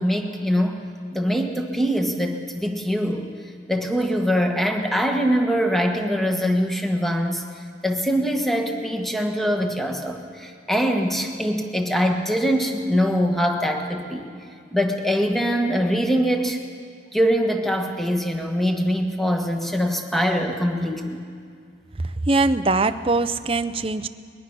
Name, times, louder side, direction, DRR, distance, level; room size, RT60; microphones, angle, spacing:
voice 1, 0.0-3.3 3.7-7.4 7.8-14.3 14.7-16.6 17.1-21.2, equal, ahead, 3 dB, 1.5 m, -23 dB
voice 2, 22.0-24.1, right 3 dB, 30° right, 11 dB, 0.6 m, -22 dB
22.0 x 21.5 x 6.2 m, 2.2 s
head